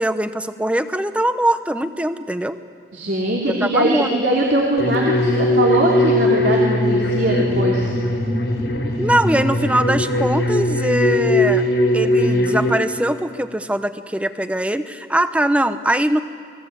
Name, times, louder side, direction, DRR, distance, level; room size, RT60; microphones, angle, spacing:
voice 1, 0.0-2.6 3.4-4.1 9.0-11.6 11.9-16.2, right 1 dB, 5° right, 10 dB, 0.8 m, -21 dB
voice 2, 2.9-7.9, right 1 dB, 75° right, -2 dB, 2.8 m, -21 dB
sound 1, 4.8-12.7, left 1 dB, 85° left, 4.9 m, -19 dB
29.0 x 20.0 x 8.2 m, 2.1 s
head